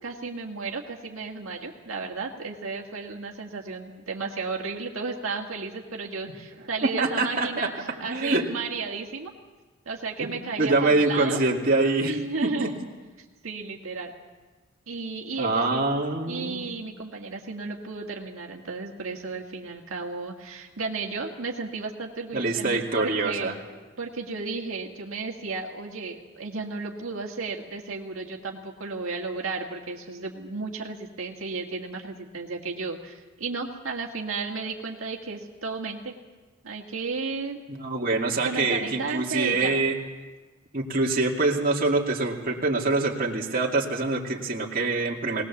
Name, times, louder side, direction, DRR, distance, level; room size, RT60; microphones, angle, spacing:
voice 1, 0.0-9.3 9.9-11.4 12.0-12.7 13.2-14.1 14.9-15.9 16.3-23.6 24.0-36.1 36.6-37.6 38.4-39.8, right 4 dB, 80° right, 1 dB, 1.8 m, -33 dB
voice 2, 7.0-7.7 8.0-8.5 10.2-10.3 10.6-12.1 12.4-12.7 15.4-16.6 22.3-23.5 37.8-40.0 40.7-45.4, right 3 dB, 45° right, -1 dB, 2.3 m, -25 dB
21.0 x 19.0 x 7.2 m, 1.3 s
head